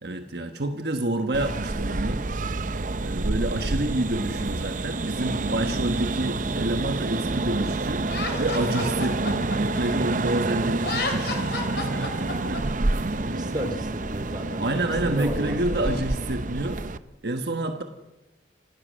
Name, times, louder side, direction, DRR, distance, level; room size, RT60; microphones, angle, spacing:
voice 1, 0.0-2.2 3.0-8.1 8.4-12.6 14.6-16.8 17.2-17.8, right 1 dB, 65° right, 6 dB, 1.3 m, -28 dB
sound 1, 1.3-17.0, right 2 dB, 45° right, 0.7 m, -28 dB
Laughter, 8.1-10.3 10.8-12.6, left 3 dB, 65° left, 4.2 m, -31 dB
voice 2, 13.2-14.6 15.0-15.9, equal, 25° right, 6 dB, 3.2 m, -33 dB
27.0 x 17.0 x 6.4 m, 1.0 s
head